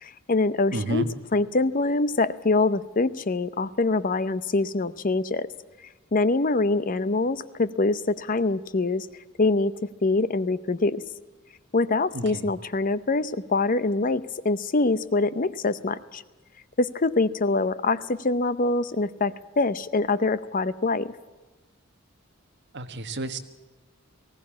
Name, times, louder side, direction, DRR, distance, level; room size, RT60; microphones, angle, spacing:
voice 1, 0.0-1.0 1.3-5.5 6.1-9.1 9.4-9.7 10.0-11.0 11.7-16.2 16.8-21.1, left 3 dB, 40° left, 15 dB, 0.7 m, -24 dB
voice 2, 0.7-1.1 12.1-12.5 22.7-23.4, right 1 dB, 55° right, 7 dB, 1.5 m, -30 dB
19.5 x 16.5 x 8.6 m, 1.2 s
head